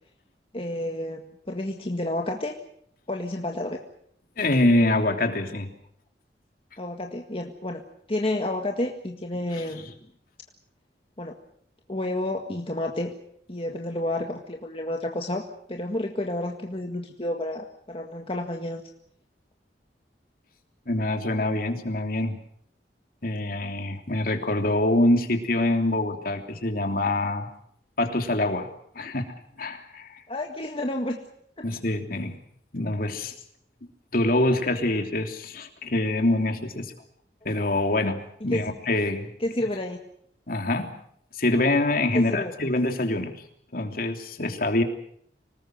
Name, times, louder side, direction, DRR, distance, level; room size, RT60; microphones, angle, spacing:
voice 1, 0.5-2.6 3.1-3.8 6.8-7.8 8.1-9.9 11.2-11.4 11.9-13.1 13.5-15.4 15.7-18.8 30.3-31.2 31.6-31.7 38.5-38.6 39.4-40.0 42.1-42.5, left 1 dB, 30° left, 2 dB, 1.8 m, -30 dB
voice 2, 4.4-5.7 20.9-22.4 23.2-27.5 28.0-28.7 28.9-29.3 29.6-30.2 31.6-32.3 32.7-33.3 34.1-36.9 37.4-39.3 40.5-40.9 41.3-43.4 43.7-44.8, left 1 dB, 55° left, 5 dB, 3.1 m, -25 dB
25.5 x 20.0 x 7.8 m, 0.68 s
head